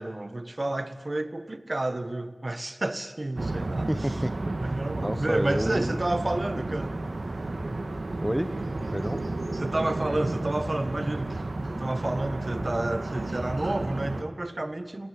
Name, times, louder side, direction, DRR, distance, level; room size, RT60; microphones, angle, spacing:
voice 1, 0.0-3.9 4.6-7.0 9.5-11.4 11.7-15.1, right 2 dB, 50° right, 11 dB, 1.4 m, -30 dB
sound 1, 3.3-14.2, right 2 dB, 90° right, 1.7 m, -32 dB
voice 2, 3.9-4.6 5.0-6.0 8.2-8.5 8.9-9.2, equal, 5° right, 12 dB, 0.9 m, -30 dB
21.0 x 20.0 x 8.7 m, 1.4 s
wide cardioid pair, 50°, 0 cm